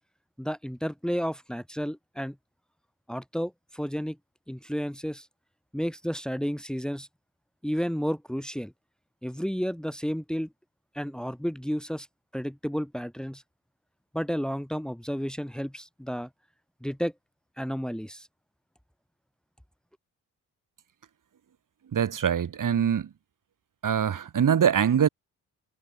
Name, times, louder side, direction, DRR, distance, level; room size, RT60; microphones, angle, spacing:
voice 1, 0.4-2.4 3.1-4.2 4.5-5.3 5.7-7.1 7.6-8.7 9.2-10.5 10.9-12.1 12.3-13.4 14.1-16.3 16.8-17.1 17.6-18.3, equal, ahead, 2.4 m, -31 dB
voice 2, 21.9-23.1 23.8-25.1, right 8 dB, 60° right, 4.2 m, -23 dB
supercardioid pair, 60°, 36 cm